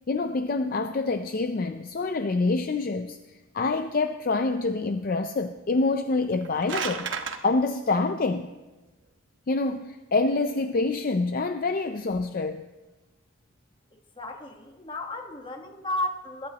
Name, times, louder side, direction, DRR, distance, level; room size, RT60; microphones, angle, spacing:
voice 1, 0.1-3.2 3.5-7.1 7.4-8.5 9.5-12.6, left 3 dB, 45° left, 0.4 m, -26 dB
sound 1, 6.2-7.4, right 6 dB, 65° right, 1.1 m, -32 dB
voice 2, 13.9-16.5, left 1 dB, 25° left, 1.3 m, -34 dB
22.0 x 12.0 x 2.9 m
head